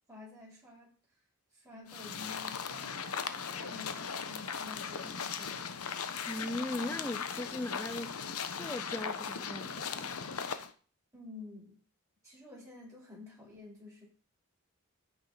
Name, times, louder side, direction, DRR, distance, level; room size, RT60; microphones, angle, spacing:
voice 1, 0.1-0.9 1.5-5.7 11.1-11.8 12.2-14.0, left 3 dB, 15° right, 7.7 m, -50 dB
sound 1, 1.9-10.7, left 6 dB, 75° left, 1.2 m, -38 dB
voice 2, 6.3-10.2, left 1 dB, 10° left, 0.5 m, -39 dB
15.0 x 6.7 x 5.1 m
head